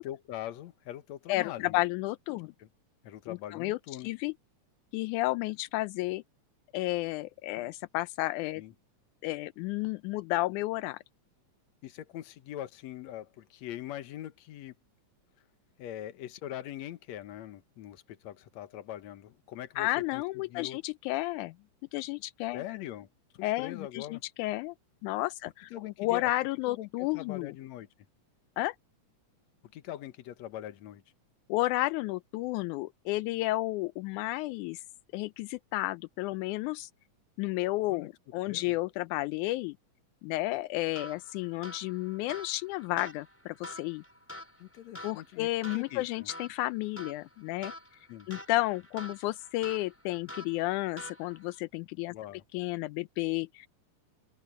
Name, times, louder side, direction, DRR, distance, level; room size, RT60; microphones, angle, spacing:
voice 1, 0.0-1.8 2.6-2.7 3.0-4.1 8.6-8.7 11.8-14.8 15.8-20.2 20.5-20.8 22.5-23.1 23.3-24.2 25.7-26.3 26.7-27.9 29.7-31.0 37.9-38.1 38.5-38.8 44.6-46.3 48.1-48.3 52.1-52.4, left 12 dB, 70° left, 2.3 m, -42 dB
voice 2, 1.3-2.5 3.3-3.8 4.0-4.3 4.9-6.2 6.7-8.6 9.2-11.0 19.8-21.5 21.9-22.6 23.4-24.8 25.0-25.7 26.0-27.5 28.6-28.8 31.5-34.8 35.1-36.9 37.4-39.8 40.2-44.0 45.0-47.7 48.3-52.1 52.5-53.7, left 19 dB, 85° left, 2.0 m, -32 dB
sound 1, 40.9-51.6, left 1 dB, 5° left, 4.9 m, -47 dB
open air
omnidirectional pair, 3.4 m